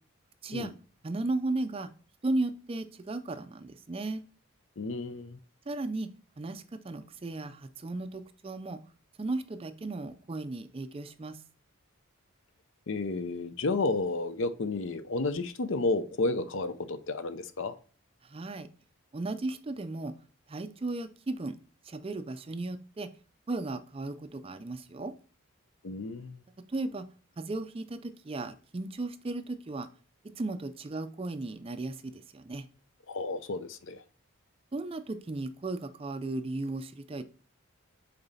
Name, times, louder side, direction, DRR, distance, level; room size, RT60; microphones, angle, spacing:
voice 1, 1.0-1.9 2.2-4.2 5.7-6.1 6.4-8.8 9.2-11.4 18.2-18.7 19.1-20.1 20.5-21.6 21.9-23.1 23.5-25.1 26.7-27.0 27.4-29.9 30.4-32.7 34.7-37.2, right 2 dB, 25° right, 0.4 m, -35 dB
voice 2, 4.8-5.4 12.9-17.7 25.8-26.4 33.1-34.0, left 3 dB, 60° left, 0.6 m, -31 dB
6.8 x 4.0 x 4.1 m
head